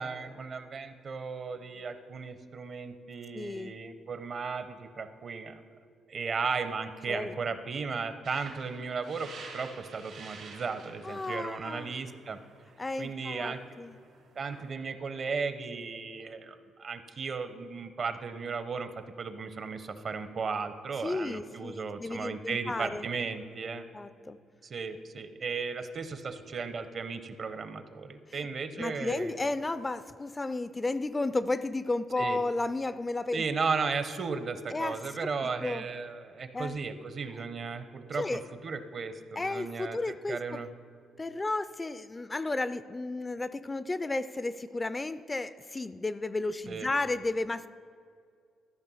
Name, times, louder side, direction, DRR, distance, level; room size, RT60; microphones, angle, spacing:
voice 1, 0.0-5.6 6.1-12.4 13.0-13.6 14.4-23.9 24.6-29.3 32.2-32.4 33.3-40.7 46.7-46.9, right 5 dB, 50° right, 10 dB, 0.7 m, -35 dB
voice 2, 3.3-3.7 7.1-7.3 11.0-11.9 12.8-13.9 21.0-23.1 23.9-24.4 28.3-28.5 28.8-33.4 34.7-35.9 36.5-36.8 38.2-38.4 39.4-40.6 41.2-47.7, left 2 dB, 20° left, 13 dB, 0.3 m, -33 dB
sound 1, 8.2-14.7, right 4 dB, 80° right, 1.7 m, -50 dB
13.5 x 5.0 x 5.5 m, 2.3 s
cardioid pair, 90°, 0 cm